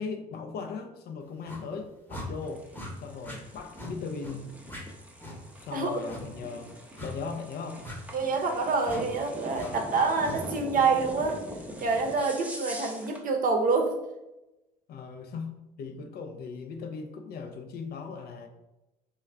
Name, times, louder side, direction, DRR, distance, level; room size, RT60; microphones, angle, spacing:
voice 1, 0.0-2.7 3.0-4.6 5.6-7.9 14.9-18.5, left 5 dB, 50° left, 6 dB, 0.5 m, -38 dB
sound 1, 1.4-1.6 2.1-2.3 2.7-2.9 3.2-3.4 3.7-3.9 4.2-4.4 4.7-4.8 5.2-5.4 6.1-6.2 7.0-7.1 7.8-8.0 8.8-9.0 9.5-9.7 10.2-10.4, left 1 dB, 10° left, 1.0 m, -40 dB
sound 2, 2.3-13.3, equal, 5° right, 0.6 m, -43 dB
voice 2, 8.1-11.4 11.8-13.9, right 4 dB, 40° right, 3 dB, 0.7 m, -26 dB
3.1 x 2.2 x 3.4 m, 0.96 s
hypercardioid pair, 55°, 21 cm